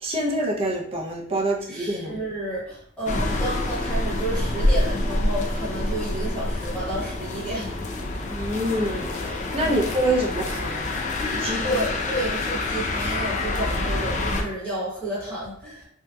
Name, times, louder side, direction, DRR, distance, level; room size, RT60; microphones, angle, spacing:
voice 1, 0.0-2.2 8.3-10.9 11.4-11.6, right 1 dB, 25° right, -1 dB, 0.5 m, -26 dB
voice 2, 1.6-8.1 9.5-9.7 11.3-15.8, right 1 dB, 5° left, -8 dB, 1.0 m, -31 dB
sound 1, 3.1-14.4, left 1 dB, 35° left, 0.3 m, -27 dB
3.3 x 2.7 x 2.2 m, 0.66 s
head